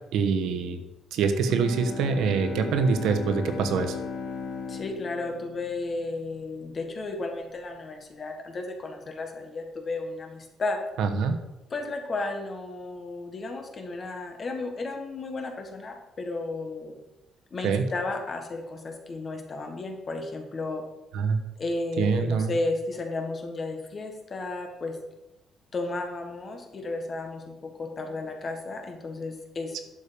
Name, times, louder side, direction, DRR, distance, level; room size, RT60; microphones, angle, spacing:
voice 1, 0.1-0.8 1.1-4.0 11.0-11.4 17.6-17.8 21.1-21.4 22.0-22.5, right 5 dB, 80° right, 7 dB, 1.1 m, -25 dB
Bowed string instrument, 1.4-6.5, left 5 dB, 55° left, 2.0 m, -36 dB
voice 2, 4.7-10.8 11.7-17.0 17.5-20.8 21.6-25.0 25.7-29.8, left 3 dB, 30° left, 4 dB, 1.5 m, -33 dB
11.5 x 6.9 x 5.1 m, 0.97 s
cardioid pair, 175°, 0 cm